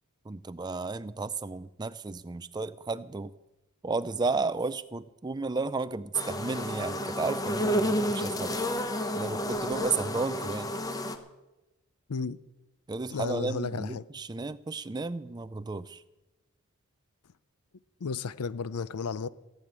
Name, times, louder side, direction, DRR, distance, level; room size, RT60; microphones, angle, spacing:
voice 1, 0.3-3.3 3.8-8.6 9.1-10.7 12.9-16.0, right 3 dB, 20° right, 0.4 m, -33 dB
sound 1, 6.1-11.2, equal, 15° left, 0.8 m, -30 dB
voice 2, 13.1-14.0 18.0-19.3, left 5 dB, 90° left, 0.6 m, -33 dB
15.5 x 7.8 x 8.9 m
head